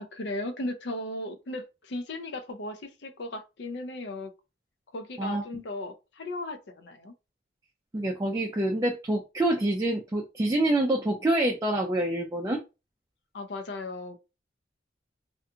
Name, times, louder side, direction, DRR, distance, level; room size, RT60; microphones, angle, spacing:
voice 1, 0.0-4.3 4.9-7.1 13.3-14.2, left 2 dB, 65° left, 0.5 m, -36 dB
voice 2, 7.9-12.6, right 1 dB, 20° right, 0.3 m, -26 dB
2.5 x 2.3 x 2.7 m
head